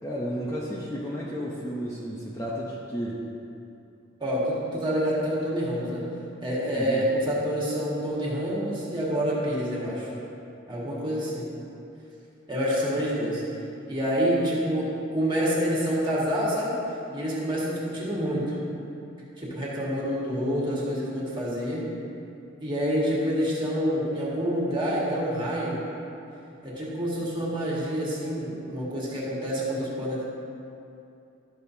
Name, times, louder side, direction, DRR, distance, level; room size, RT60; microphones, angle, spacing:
voice 1, 0.0-3.2 6.7-7.1, equal, 15° left, -6 dB, 0.7 m, -32 dB
voice 2, 4.2-6.1 6.4-10.1 10.7-11.5 12.5-13.4 13.9-16.8 17.1-18.6 19.4-21.8 22.6-25.8 26.6-30.2, equal, 25° right, -7 dB, 1.8 m, -27 dB
12.5 x 6.6 x 2.8 m, 2.7 s
head